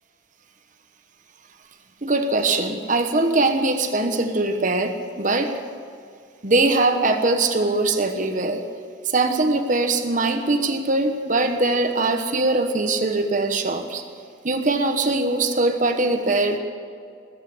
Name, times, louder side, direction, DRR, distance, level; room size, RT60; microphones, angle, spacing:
voice 1, 2.0-5.6 6.4-8.7 9.0-14.0 14.4-16.6, right 2 dB, 40° right, 6 dB, 1.1 m, -21 dB
20.0 x 8.3 x 8.6 m, 2.3 s
head